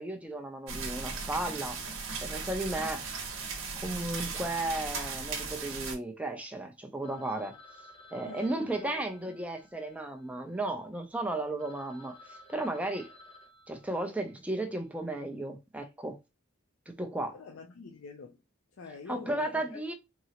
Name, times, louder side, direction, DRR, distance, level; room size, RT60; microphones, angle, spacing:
voice 1, 0.0-1.8 2.2-3.1 3.8-7.6 8.1-13.1 13.7-16.2 16.9-17.4 19.1-19.9, right 2 dB, 5° right, 0.4 m, -34 dB
sound 1, 0.7-5.9, right 4 dB, 75° right, 0.9 m, -37 dB
Telephone, 7.0-10.8 11.3-11.4 11.6-14.5, left 2 dB, 30° left, 0.7 m, -55 dB
voice 2, 8.2-9.0 17.3-18.4 18.8-19.9, left 4 dB, 70° left, 0.4 m, -46 dB
3.7 x 2.0 x 2.8 m
head